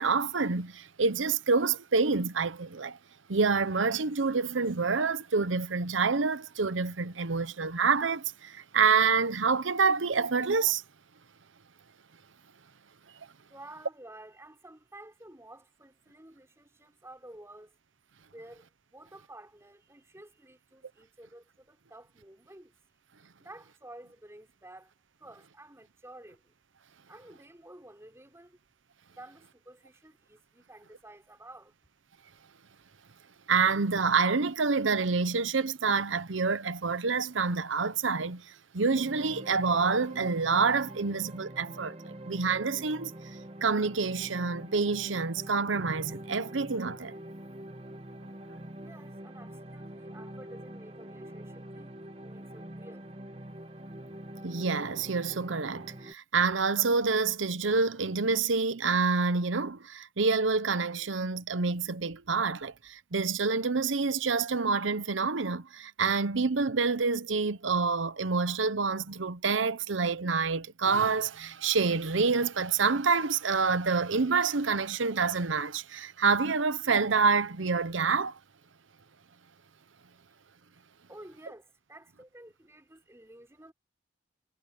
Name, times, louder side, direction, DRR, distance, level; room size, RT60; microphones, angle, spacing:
voice 1, 0.0-3.0 3.3-10.8 33.5-43.1 43.6-47.2 54.4-78.4, right 4 dB, 90° right, 0.9 m, -27 dB
voice 2, 13.5-17.7 18.3-22.7 23.4-24.9 25.2-26.5 27.1-28.6 29.1-31.7 48.8-51.9 52.2-53.1 81.1-83.7, right 1 dB, 15° right, 6.1 m, -51 dB
sound 1, 38.9-56.1, right 1 dB, 30° right, 2.0 m, -45 dB
head